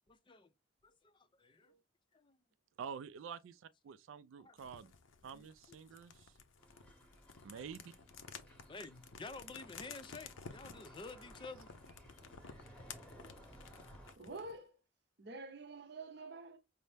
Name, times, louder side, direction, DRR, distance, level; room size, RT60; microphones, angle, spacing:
voice 1, 0.1-0.5 0.8-1.1 1.4-1.7 2.1-2.4 4.4-4.5 5.3-5.8 8.7-11.7, left 3 dB, 25° left, 0.4 m, -50 dB
voice 2, 2.8-4.9 5.2-6.3 7.4-7.9, right 6 dB, 80° right, 0.3 m, -48 dB
sound 1, 4.6-14.6, left 6 dB, 85° left, 0.6 m, -54 dB
sound 2, 6.6-14.1, equal, 5° left, 0.8 m, -59 dB
voice 3, 14.2-14.8 15.2-16.6, right 3 dB, 60° right, 0.8 m, -48 dB
5.4 x 2.0 x 3.3 m
head